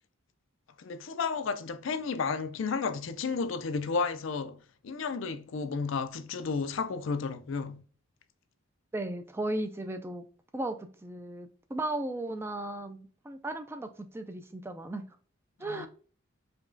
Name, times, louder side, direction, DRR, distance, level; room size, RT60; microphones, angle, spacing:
voice 1, 0.8-4.6 4.8-7.8 15.6-15.9, left 5 dB, 65° left, 0.4 m, -32 dB
voice 2, 8.9-10.3 10.5-15.1 15.6-15.9, right 1 dB, 10° right, 0.3 m, -36 dB
5.0 x 2.3 x 2.5 m
head